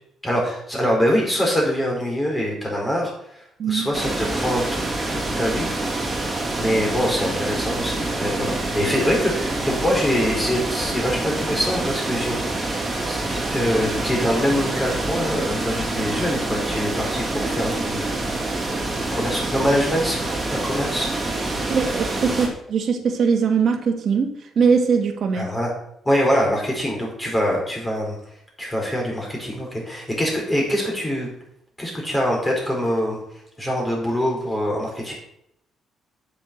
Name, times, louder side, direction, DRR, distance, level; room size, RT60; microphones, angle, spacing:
voice 1, 0.2-4.8 5.1-6.3 6.6-18.0 18.4-18.6 18.9-21.1 25.3-25.7 26.0-28.2 28.6-31.3 31.8-33.2 33.6-35.1, equal, 15° left, -2 dB, 4.8 m, -24 dB
sound 1, 3.9-22.5, right 2 dB, 20° right, 3.0 m, -26 dB
voice 2, 21.7-25.5, right 5 dB, 60° right, 4 dB, 1.8 m, -21 dB
8.2 x 6.8 x 6.3 m, 0.75 s
cardioid pair, 90°, 0 cm